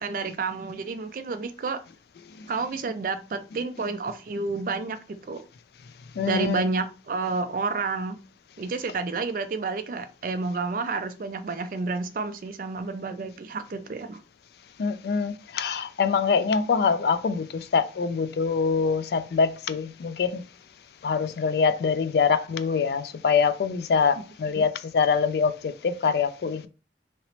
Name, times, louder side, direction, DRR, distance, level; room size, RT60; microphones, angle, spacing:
voice 1, 0.0-1.8 2.5-5.4 6.3-8.2 8.6-14.2 24.5-24.6, right 4 dB, 50° right, 0.4 m, -30 dB
voice 2, 6.2-6.6 14.8-20.4 21.0-26.7, left 5 dB, 60° left, 0.3 m, -24 dB
2.9 x 2.9 x 2.9 m
head